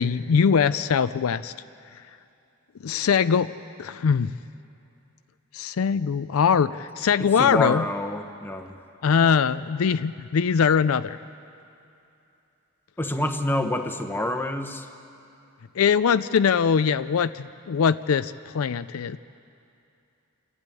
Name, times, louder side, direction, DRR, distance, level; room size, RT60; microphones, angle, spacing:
voice 1, 0.0-1.5 2.8-3.5 3.8-4.3 5.5-7.8 9.0-11.2 15.8-19.2, left 6 dB, 70° left, 13 dB, 0.4 m, -22 dB
voice 2, 7.2-8.8 13.0-14.9, left 1 dB, 10° left, 6 dB, 1.0 m, -27 dB
27.5 x 12.0 x 9.1 m, 2.7 s
head